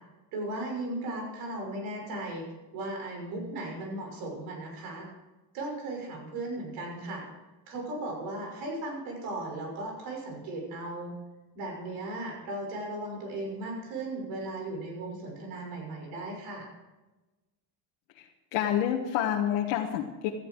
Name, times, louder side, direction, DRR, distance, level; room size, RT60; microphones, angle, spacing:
voice 1, 0.3-2.4 2.7-5.1 5.5-7.3 7.7-11.2 11.5-16.7, right 2 dB, 70° right, 1 dB, 6.3 m, -36 dB
voice 2, 18.5-20.3, left 10 dB, 85° left, 1 dB, 1.5 m, -28 dB
17.5 x 13.5 x 4.7 m, 1.1 s
cardioid pair, 145°, 39 cm